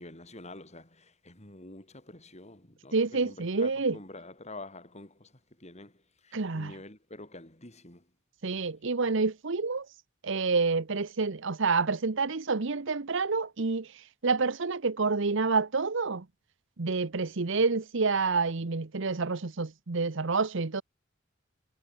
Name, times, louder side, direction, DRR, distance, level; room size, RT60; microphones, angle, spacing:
voice 1, 0.0-8.1, left 2 dB, 35° left, 7.1 m, -47 dB
voice 2, 2.9-4.0 6.3-6.7 8.4-9.9 10.2-13.9 14.2-16.3 16.8-20.8, right 4 dB, 65° right, 0.9 m, -28 dB
head